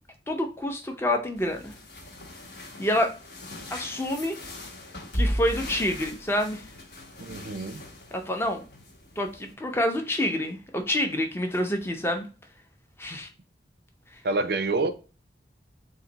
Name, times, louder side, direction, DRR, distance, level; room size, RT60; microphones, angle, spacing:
voice 1, 0.3-1.7 2.8-3.1 3.7-4.4 5.1-6.6 8.1-8.6 9.2-12.3 13.0-13.3, left 1 dB, 15° left, 0.5 m, -27 dB
sound 1, 1.4-9.5, equal, 70° left, 1.1 m, -36 dB
voice 2, 7.2-7.8 14.2-14.9, right 2 dB, 60° right, 0.4 m, -27 dB
3.9 x 2.6 x 3.9 m
head